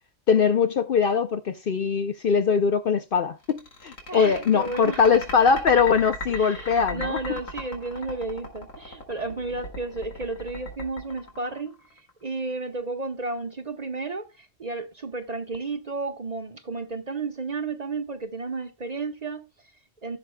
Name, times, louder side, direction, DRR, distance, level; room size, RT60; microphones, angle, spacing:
voice 1, 0.3-7.2, left 6 dB, 55° left, 0.7 m, -22 dB
sound 1, 3.4-12.1, left 1 dB, 85° left, 2.9 m, -37 dB
voice 2, 4.1-5.1 6.3-20.2, right 3 dB, 40° right, 0.8 m, -33 dB
16.0 x 7.0 x 2.2 m
omnidirectional pair, 1.3 m